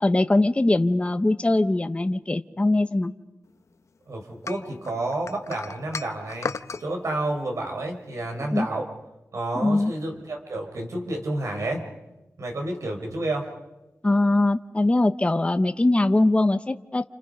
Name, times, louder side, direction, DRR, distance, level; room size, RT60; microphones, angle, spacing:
voice 1, 0.0-3.1 8.5-8.7 9.5-9.9 14.0-17.1, left 2 dB, 25° left, 9 dB, 0.8 m, -21 dB
voice 2, 4.1-6.5 6.8-8.9 9.3-11.8 12.4-13.5, right 2 dB, 85° right, 3 dB, 4.3 m, -30 dB
sound 1, 4.5-6.9, left 5 dB, 75° left, 0.8 m, -34 dB
29.5 x 29.0 x 5.3 m, 1.0 s
wide cardioid pair, 95°, 5 cm